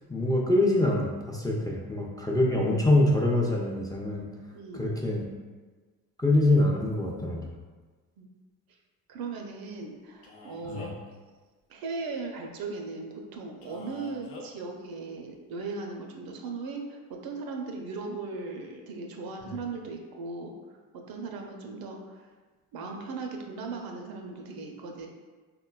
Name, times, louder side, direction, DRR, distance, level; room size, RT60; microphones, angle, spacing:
voice 1, 0.1-4.3 4.7-5.3 6.2-7.4 10.7-10.9, left 1 dB, 10° left, -2 dB, 0.4 m, -24 dB
voice 2, 9.1-11.0 11.7-20.5 20.9-22.3 22.7-25.1, right 3 dB, 55° right, 2 dB, 0.5 m, -38 dB
Male speech man speaking, 10.2-11.1 13.6-14.5, left 2 dB, 70° left, 0.7 m, -44 dB
3.7 x 2.2 x 2.2 m, 1.3 s
hypercardioid pair, 50°, 42 cm